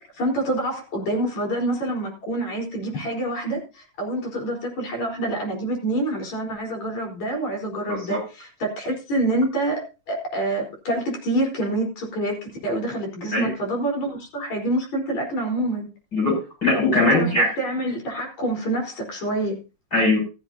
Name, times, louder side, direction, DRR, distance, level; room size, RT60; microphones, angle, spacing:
voice 1, 0.1-9.8 10.1-15.9 16.9-19.6, right 1 dB, 55° left, 0 dB, 5.5 m, -26 dB
voice 2, 7.9-8.2 13.3-13.5 16.1-17.5 19.9-20.2, left 2 dB, 25° left, -3 dB, 7.3 m, -20 dB
15.0 x 14.0 x 2.8 m, 0.31 s
omnidirectional pair, 3.9 m